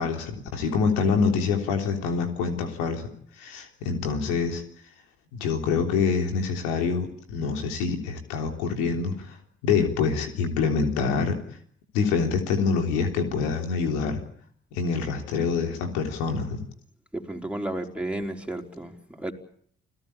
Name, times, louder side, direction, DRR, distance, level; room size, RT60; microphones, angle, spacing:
voice 1, 0.0-3.1 3.4-4.6 5.3-9.4 9.6-11.4 11.9-14.2 14.7-16.6, left 5 dB, 85° left, 4 dB, 3.5 m, -26 dB
voice 2, 17.1-19.3, right 1 dB, 5° right, 2 dB, 4.4 m, -32 dB
29.0 x 17.5 x 8.7 m, 0.63 s
hypercardioid pair, 45°, 32 cm